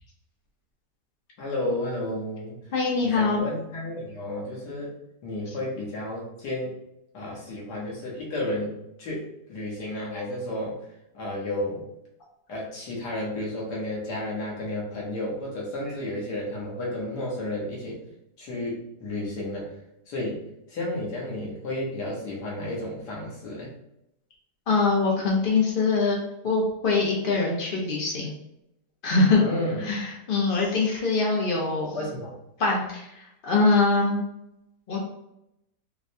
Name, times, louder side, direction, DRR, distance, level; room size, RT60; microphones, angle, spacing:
voice 1, 1.4-2.6 3.0-4.9 5.2-6.8 7.1-10.8 11.1-11.8 12.5-18.0 18.4-19.7 20.1-20.4 20.7-23.7 29.4-29.8 31.9-32.3, left 1 dB, 70° left, -4 dB, 1.7 m, -32 dB
voice 2, 2.7-3.4 5.5-5.6 24.7-26.2 26.4-28.3 29.0-29.4 29.8-32.0 32.6-34.2 34.9-35.0, left 3 dB, 50° left, -1 dB, 0.6 m, -23 dB
4.7 x 2.2 x 2.7 m, 0.83 s
omnidirectional pair, 1.9 m